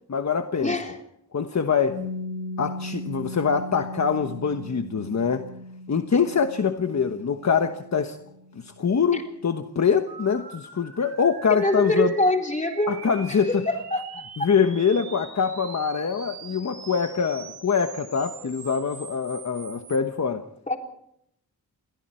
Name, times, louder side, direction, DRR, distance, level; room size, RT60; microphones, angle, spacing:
voice 1, 0.1-0.7 1.3-2.0 2.6-5.4 5.9-8.2 8.5-12.1 12.9-13.6 14.4-20.5, left 6 dB, 45° left, 7 dB, 1.2 m, -24 dB
voice 2, 0.6-1.0 9.1-9.2 11.6-12.9 13.3-14.0 14.4-14.5 20.7-20.8, left 1 dB, 20° left, 2 dB, 3.9 m, -24 dB
Piano, 1.9-9.2, left 2 dB, 65° left, 5.5 m, -38 dB
sound 1, 10.1-20.0, right 6 dB, 90° right, 5.0 m, -43 dB
28.5 x 22.5 x 4.5 m, 0.74 s
wide cardioid pair, 115°, 38 cm